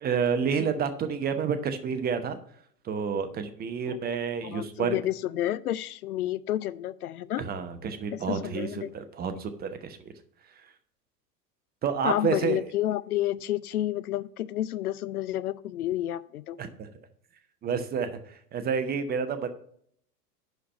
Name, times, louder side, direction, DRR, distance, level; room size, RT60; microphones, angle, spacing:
voice 1, 0.0-2.4 2.8-5.0 7.4-10.1 11.8-12.6 16.6-16.9 17.6-18.2 18.5-19.5, right 6 dB, 20° right, 9 dB, 0.9 m, -29 dB
voice 2, 4.4-7.4 8.1-8.9 12.0-16.6, left 13 dB, 65° left, 17 dB, 0.6 m, -30 dB
11.0 x 4.6 x 5.4 m, 0.65 s
figure-of-eight pair, 90°, 49 cm